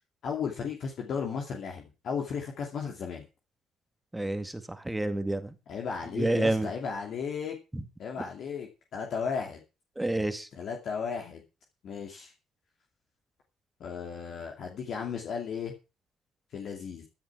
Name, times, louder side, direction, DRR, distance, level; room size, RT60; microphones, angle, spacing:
voice 1, 0.2-3.2 5.7-7.6 8.0-9.6 10.5-11.4 11.8-12.3 13.8-15.7 16.5-17.1, left 6 dB, 50° left, 1 dB, 2.6 m, -35 dB
voice 2, 4.1-5.5 6.2-6.7 7.7-7.8 10.0-10.5, right 1 dB, 10° right, 10 dB, 2.0 m, -29 dB
15.0 x 10.5 x 4.7 m, 0.30 s
figure-of-eight pair, 45°, 0 cm